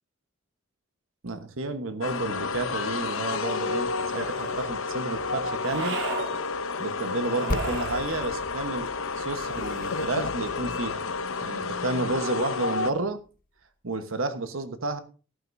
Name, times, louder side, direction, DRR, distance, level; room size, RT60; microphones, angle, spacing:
voice 1, 1.2-6.0 6.8-8.9 9.2-11.0 11.4-13.2 13.8-15.0, right 2 dB, 80° right, 1.3 m, -31 dB
sound 1, 2.0-12.9, left 4 dB, 80° left, 0.8 m, -31 dB
sound 2, 3.9-4.7 5.6-6.3 7.2-8.1 9.4-10.3, right 3 dB, 60° right, 2.0 m, -36 dB
sound 3, 7.5-13.2, left 2 dB, 40° left, 0.7 m, -38 dB
14.5 x 11.5 x 2.7 m
head